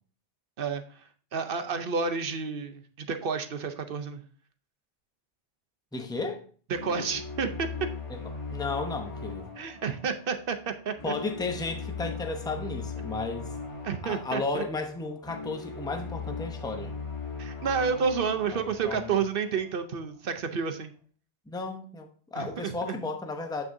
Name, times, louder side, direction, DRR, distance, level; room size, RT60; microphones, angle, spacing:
voice 1, 0.6-4.2 6.7-7.7 9.6-11.1 13.8-14.6 17.4-20.9 22.3-23.0, right 5 dB, 55° right, 0.8 m, -30 dB
voice 2, 5.9-6.4 8.1-8.2 8.5-9.5 11.0-13.5 14.0-16.9 18.5-19.2 21.5-23.6, left 3 dB, 5° left, 0.6 m, -34 dB
sound 1, 6.7-19.8, left 4 dB, 25° left, 1.4 m, -39 dB
7.7 x 6.0 x 2.6 m
omnidirectional pair, 1.2 m